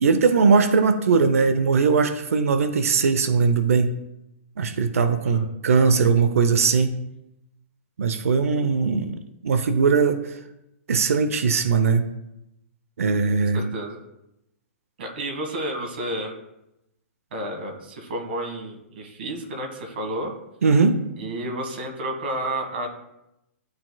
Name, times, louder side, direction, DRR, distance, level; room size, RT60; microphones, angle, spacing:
voice 1, 0.0-3.9 4.6-7.0 8.0-9.1 9.4-10.2 10.9-12.1 13.0-13.6 20.6-21.0, right 5 dB, 90° right, 10 dB, 0.6 m, -20 dB
voice 2, 13.5-14.0 15.0-16.3 17.3-20.3 21.2-22.9, right 1 dB, 50° right, 3 dB, 1.5 m, -31 dB
11.5 x 4.0 x 2.3 m, 0.87 s
hypercardioid pair, 175°, 7 cm